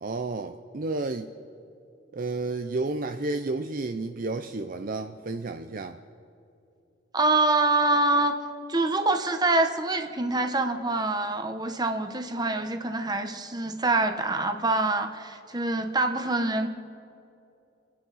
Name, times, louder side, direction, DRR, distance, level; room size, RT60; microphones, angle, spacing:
voice 1, 0.0-1.3 2.1-6.0, right 3 dB, 45° right, 7 dB, 0.5 m, -31 dB
voice 2, 7.1-8.3 8.7-16.7, right 2 dB, 20° right, 6 dB, 1.1 m, -25 dB
30.0 x 10.0 x 4.2 m, 2.8 s
head